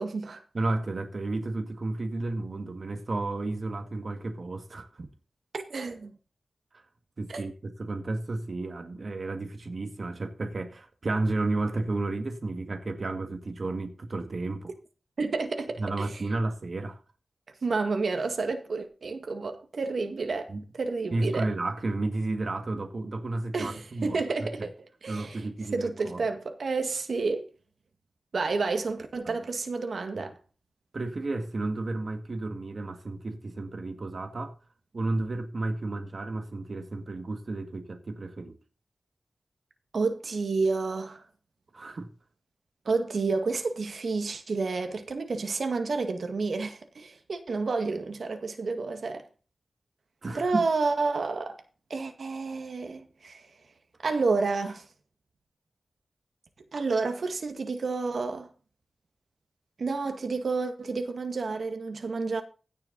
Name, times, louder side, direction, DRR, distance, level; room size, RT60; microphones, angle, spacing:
voice 1, 0.0-0.4 5.5-6.1 7.3-7.4 15.2-16.1 17.6-20.5 20.8-21.5 23.5-24.7 25.0-25.4 25.7-27.4 28.3-30.3 39.9-41.2 42.9-49.2 50.3-51.6 51.9-53.5 54.0-54.9 56.7-58.5 59.8-62.4, right 4 dB, 75° right, 1.9 m, -30 dB
voice 2, 0.5-5.1 6.7-6.8 7.2-14.7 15.8-17.0 20.5-20.6 21.1-24.7 25.1-26.2 29.2-29.4 30.2-30.3 30.9-34.5 34.9-38.6 41.7-42.1 50.2-50.7, right 2 dB, 55° right, 1.9 m, -32 dB
16.0 x 6.8 x 4.0 m
wide cardioid pair, 65°, 0 cm